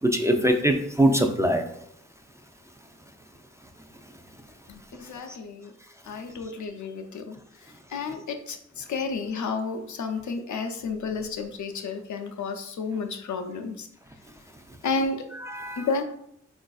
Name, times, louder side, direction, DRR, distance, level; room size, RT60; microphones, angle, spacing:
voice 1, 0.0-1.6 15.4-15.9, right 1 dB, 10° right, 3 dB, 0.3 m, -22 dB
voice 2, 4.7-5.7 6.0-7.4 7.9-13.9 14.8-15.3 15.8-16.0, left 4 dB, 80° left, 6 dB, 0.5 m, -31 dB
4.0 x 2.5 x 2.3 m, 0.70 s
cardioid pair, 60°, 29 cm